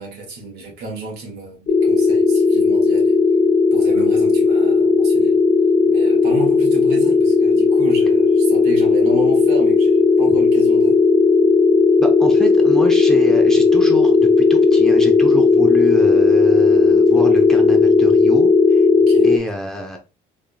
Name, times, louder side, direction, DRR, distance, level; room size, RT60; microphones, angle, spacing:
voice 1, 0.0-3.2 3.7-5.4 5.9-11.0 18.9-19.3, right 2 dB, 70° right, 1.6 m, -32 dB
sound 1, 1.7-19.4, left 4 dB, 40° left, 0.4 m, -14 dB
voice 2, 12.0-18.8 19.2-20.0, right 1 dB, 5° left, 0.8 m, -26 dB
3.6 x 3.5 x 2.3 m
cardioid pair, 110°, 17 cm